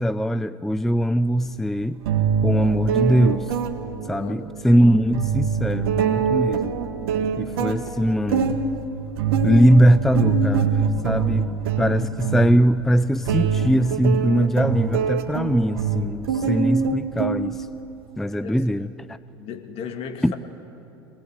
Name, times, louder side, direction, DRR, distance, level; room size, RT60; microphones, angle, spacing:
voice 1, 0.0-2.0 2.4-3.5 4.1-6.8 7.4-8.6 9.4-11.5 11.8-17.7 18.2-19.2 20.2-20.3, equal, ahead, 14 dB, 0.4 m, -21 dB
sound 1, 1.5-1.6 2.1-17.9, right 5 dB, 70° right, 1.7 m, -24 dB
voice 2, 4.1-4.7 7.7-8.2 11.3-11.5 18.4-18.9 19.3-20.4, left 7 dB, 50° left, 5 dB, 2.4 m, -38 dB
24.5 x 19.0 x 8.3 m, 2.8 s
figure-of-eight pair, 75°, 13 cm